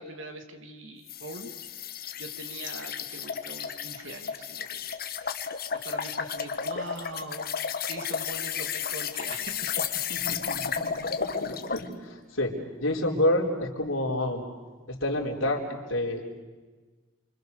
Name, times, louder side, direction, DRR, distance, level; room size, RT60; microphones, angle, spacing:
voice 1, 0.0-1.5 2.2-4.9 5.8-9.7, right 2 dB, 75° right, 5 dB, 2.9 m, -42 dB
sound 1, 1.1-11.9, left 7 dB, 50° left, 1.4 m, -33 dB
voice 2, 10.1-12.5 12.8-14.5 14.9-16.4, left 1 dB, 80° left, 0 dB, 4.0 m, -29 dB
29.5 x 25.0 x 6.7 m, 1.3 s
head